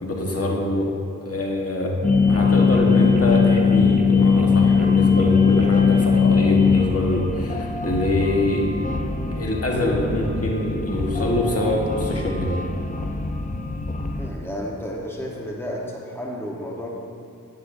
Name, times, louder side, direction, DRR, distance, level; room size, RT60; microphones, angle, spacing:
voice 1, 0.0-0.9 1.2-1.9 2.2-8.6 9.3-12.6, left 1 dB, 45° left, -1 dB, 1.4 m, -24 dB
sound 1, 2.0-14.3, left 5 dB, 25° left, 0.7 m, -20 dB
voice 2, 14.2-16.9, equal, 5° left, -2 dB, 1.2 m, -32 dB
10.5 x 9.6 x 2.7 m, 2.4 s
cardioid pair, 50°, 33 cm